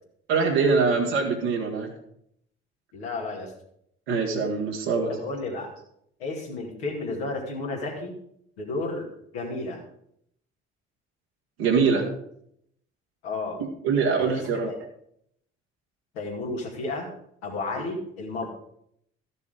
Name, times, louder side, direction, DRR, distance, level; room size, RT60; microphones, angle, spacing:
voice 1, 0.3-1.9 4.1-5.1 11.6-12.1 13.8-14.7, right 5 dB, 90° right, -2 dB, 1.9 m, -23 dB
voice 2, 2.9-3.5 5.1-5.7 6.2-8.1 8.6-9.1 9.3-9.8 13.2-13.6 14.2-14.8 16.1-17.1 17.4-18.5, left 2 dB, 90° left, -2 dB, 2.2 m, -32 dB
13.5 x 6.8 x 5.0 m, 0.73 s
hypercardioid pair, 50°, 31 cm